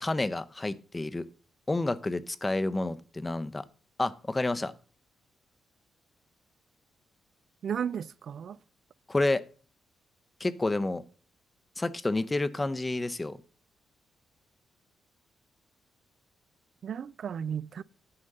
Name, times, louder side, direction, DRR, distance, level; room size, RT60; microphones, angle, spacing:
voice 1, 0.0-1.3 1.7-3.6 4.0-4.7 9.1-9.4 10.4-11.0 11.8-13.4, left 2 dB, 20° left, 0.6 m, -29 dB
voice 2, 7.6-8.6 16.8-17.8, right 8 dB, 65° right, 0.3 m, -34 dB
9.7 x 4.3 x 6.5 m
cardioid pair, 80°, 0 cm